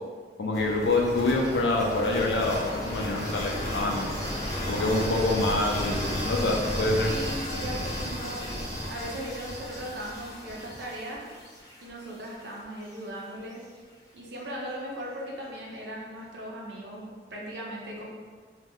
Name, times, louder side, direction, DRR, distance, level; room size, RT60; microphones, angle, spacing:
voice 1, 0.4-4.1 4.7-7.1, left 2 dB, 75° left, 0 dB, 0.5 m, -26 dB
sound 1, 0.5-12.4, equal, 20° left, 0.6 m, -34 dB
voice 2, 7.0-11.2 11.8-13.6 14.1-18.1, equal, 75° right, -4 dB, 0.7 m, -38 dB
2.7 x 2.1 x 3.5 m, 1.5 s
head